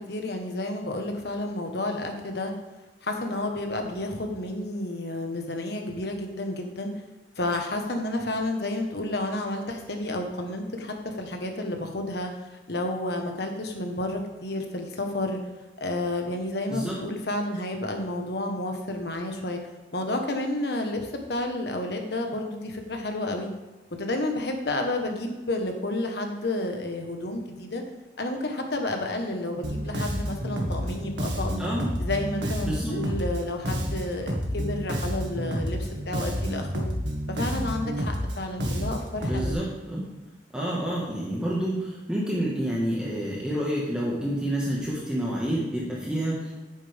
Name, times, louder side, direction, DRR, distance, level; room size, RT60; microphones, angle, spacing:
voice 1, 0.1-2.5 3.0-6.9 7.4-12.3 12.7-15.4 15.8-19.6 19.9-23.5 24.0-27.8 28.2-31.6 32.0-36.9 37.3-39.6, left 1 dB, 65° left, 3 dB, 1.4 m, -31 dB
Bass guitar, 29.6-39.5, equal, 80° right, 1.8 m, -29 dB
voice 2, 31.6-31.9 32.6-33.0 39.2-40.1 40.5-46.5, right 1 dB, 5° right, -6 dB, 1.7 m, -28 dB
10.5 x 9.3 x 3.6 m, 1.1 s
head